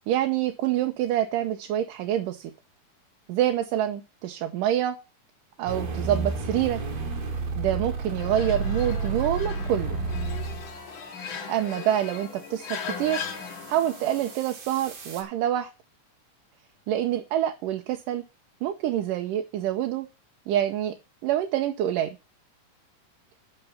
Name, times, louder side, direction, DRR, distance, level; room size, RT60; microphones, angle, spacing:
voice 1, 0.1-2.5 3.3-5.0 5.6-6.8 7.6-10.0 11.5-13.2 13.7-15.7 16.9-18.2 18.6-20.1 20.5-20.9 21.2-22.2, right 11 dB, 85° right, 5 dB, 2.5 m, -26 dB
sound 1, 5.7-10.9 12.6-15.2, right 4 dB, 55° right, 3.1 m, -32 dB
sound 2, 8.2-14.4, left 6 dB, 45° left, 1.9 m, -38 dB
12.5 x 5.9 x 5.6 m, 0.28 s
omnidirectional pair, 3.7 m